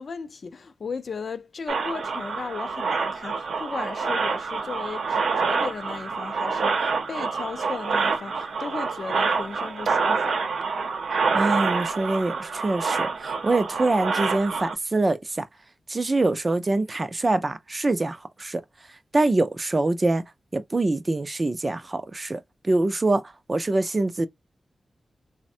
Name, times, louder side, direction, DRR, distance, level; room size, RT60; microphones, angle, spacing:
voice 1, 0.0-10.4, left 4 dB, 50° left, 0.4 m, -36 dB
tv static slowed down and looped kinda, 1.7-14.7, right 4 dB, 80° right, 0.6 m, -27 dB
voice 2, 11.3-15.5 15.9-18.6 19.1-20.2 20.5-23.2 23.5-24.3, right 2 dB, 25° right, 0.4 m, -24 dB
3.3 x 2.1 x 2.7 m
wide cardioid pair, 165°, 0 cm